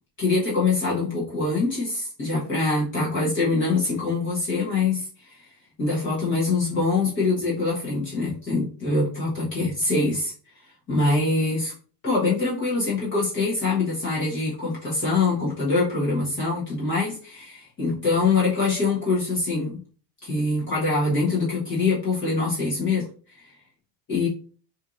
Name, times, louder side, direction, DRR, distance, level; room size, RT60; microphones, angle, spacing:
voice 1, 0.2-5.4 5.8-10.3 10.9-11.7 12.0-19.8 20.2-23.1 23.3-23.5 24.1-24.3, left 3 dB, 25° left, -5 dB, 1.1 m, -24 dB
4.4 x 2.8 x 2.5 m, 0.40 s
cardioid pair, 175°, 49 cm